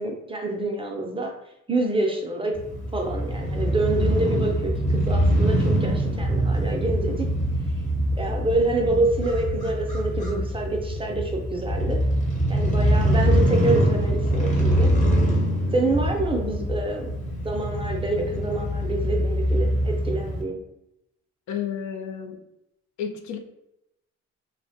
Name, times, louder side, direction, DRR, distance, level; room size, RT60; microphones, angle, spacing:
voice 1, 0.0-1.3 1.7-2.6 2.9-7.3 8.2-12.0 12.5-14.9 15.7-17.1 17.4-20.6, right 2 dB, 20° right, 1 dB, 0.4 m, -27 dB
Crow / Motorcycle, 2.5-20.4, equal, 25° left, 0.7 m, -24 dB
voice 2, 21.5-22.4 23.0-23.4, left 8 dB, 75° left, 6 dB, 0.4 m, -31 dB
2.4 x 2.1 x 2.8 m, 0.85 s
cardioid pair, 90°, 30 cm